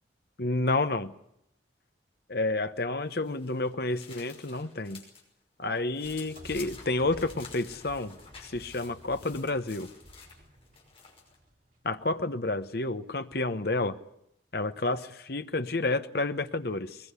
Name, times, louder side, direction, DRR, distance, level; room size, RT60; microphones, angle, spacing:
voice 1, 0.4-1.1 2.3-5.0 5.6-9.9 11.8-14.0 14.5-17.0, left 2 dB, 60° left, 10 dB, 1.1 m, -30 dB
sound 1, 3.1-5.2 5.6-11.4, left 5 dB, 30° left, 5.7 m, -51 dB
sound 2, 6.0-12.0, equal, 45° right, 2.7 m, -52 dB
22.0 x 21.5 x 8.3 m, 0.76 s
head